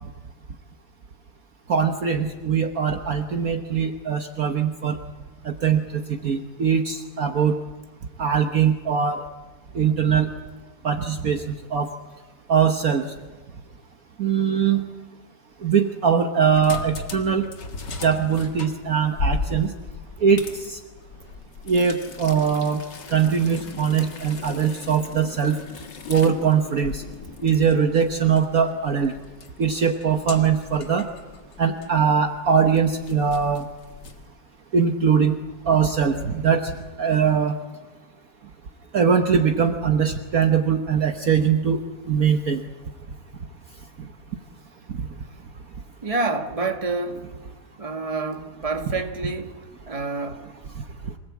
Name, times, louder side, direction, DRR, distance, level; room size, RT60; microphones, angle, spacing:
voice 1, 1.7-5.0 5.4-7.6 8.2-9.2 9.7-10.3 10.8-11.9 12.5-13.0 14.2-14.9 15.6-17.5 18.0-19.7 20.2-20.8 21.7-22.8 23.1-25.6 26.1-27.0 27.4-29.1 29.6-31.1 31.6-33.7 34.7-35.4 35.7-36.7 37.0-37.5 38.9-41.8 42.1-42.6, right 7 dB, 55° right, 1.5 m, -21 dB
sound 1, 16.4-34.3, left 3 dB, 70° left, 2.5 m, -37 dB
voice 2, 46.0-47.3 47.8-49.6 49.9-50.5, right 3 dB, 20° right, 1.7 m, -28 dB
26.0 x 18.5 x 8.4 m
omnidirectional pair, 2.0 m